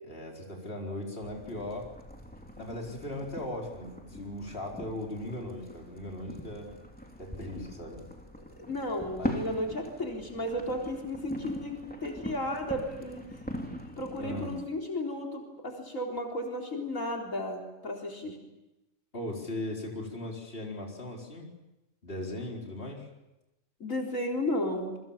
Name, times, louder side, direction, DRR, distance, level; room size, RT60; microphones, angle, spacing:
voice 1, 0.0-1.9 2.6-6.7 7.2-8.0 9.1-9.4 14.2-14.6 19.1-21.5 22.0-23.1, left 1 dB, 50° left, -1 dB, 4.7 m, -38 dB
sound 1, 1.2-14.6, equal, 5° left, 3.2 m, -42 dB
voice 2, 8.6-13.2 14.0-18.4 23.8-25.0, left 1 dB, 85° left, 0 dB, 4.5 m, -34 dB
28.0 x 23.5 x 7.3 m, 0.97 s
omnidirectional pair, 1.3 m